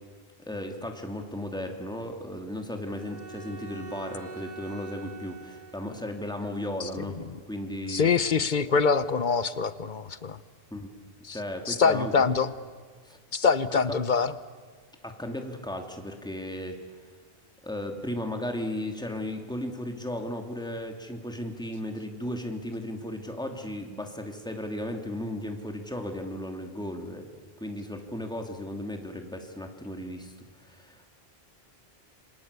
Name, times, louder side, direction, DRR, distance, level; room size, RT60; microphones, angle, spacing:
voice 1, 0.5-7.2 7.5-8.1 10.7-10.9 11.3-12.2 13.0-13.2 13.9-14.0 15.0-16.8 17.6-27.2 27.6-30.3 30.6-31.1, left 1 dB, 5° left, 3 dB, 2.7 m, -35 dB
Bowed string instrument, 2.9-6.4, right 5 dB, 25° right, 3.8 m, -44 dB
voice 2, 7.9-10.4 11.3-11.4 11.7-12.5 13.3-14.3, left 5 dB, 50° left, 14 dB, 1.2 m, -24 dB
28.0 x 25.5 x 8.3 m, 1.5 s
omnidirectional pair, 1.0 m